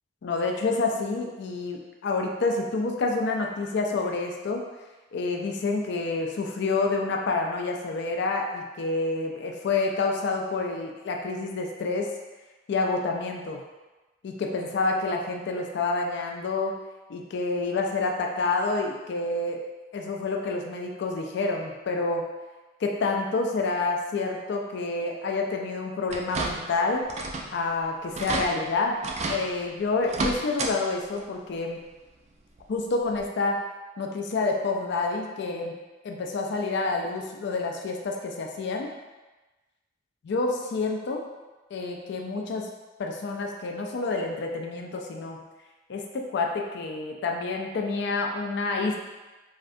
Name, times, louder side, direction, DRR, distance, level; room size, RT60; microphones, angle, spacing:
voice 1, 0.2-4.6 5.1-12.1 12.7-13.6 14.2-16.7 17.1-19.6 19.9-22.3 22.8-27.1 27.5-29.0 29.3-31.8 32.7-33.7 34.0-35.8 36.0-38.9 40.2-41.3 41.7-42.7 43.0-45.5 45.9-49.0, left 3 dB, 65° left, 2 dB, 0.4 m, -28 dB
sound 1, 26.1-26.8 27.1-27.5 27.8-27.9 28.1-28.5 29.0-29.4 30.0-30.7 31.1-31.2 32.6-32.7 33.2-33.3, right 3 dB, 35° right, 0.3 m, -30 dB
3.2 x 2.5 x 2.6 m, 1.2 s
head